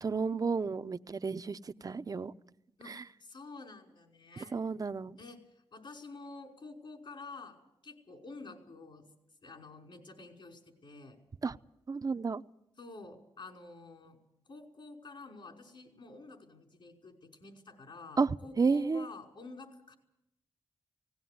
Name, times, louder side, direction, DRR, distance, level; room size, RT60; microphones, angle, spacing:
voice 1, 0.0-2.3 2.9-3.0 4.5-5.1 11.4-11.6 11.9-12.4 18.2-19.1, right 4 dB, 40° right, 12 dB, 0.7 m, -32 dB
voice 2, 2.8-4.5 5.2-7.6 7.8-9.1 9.4-11.2 12.8-14.2 14.5-19.9, left 3 dB, 60° left, 2 dB, 5.4 m, -49 dB
18.5 x 17.5 x 9.5 m, 0.82 s
cardioid pair, 75°, 9 cm